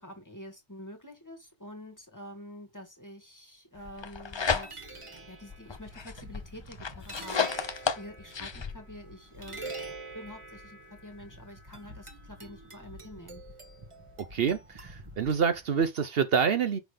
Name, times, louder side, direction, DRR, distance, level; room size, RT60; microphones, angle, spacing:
voice 1, 0.0-9.7 10.1-13.4, left 1 dB, 15° left, 1.6 m, -47 dB
sound 1, 3.8-15.9, right 2 dB, 30° right, 1.6 m, -46 dB
sound 2, 3.9-5.1 5.5-8.7, left 5 dB, 35° left, 0.5 m, -32 dB
voice 2, 14.2-16.8, right 6 dB, 65° right, 0.9 m, -27 dB
5.7 x 3.4 x 5.0 m
omnidirectional pair, 1.1 m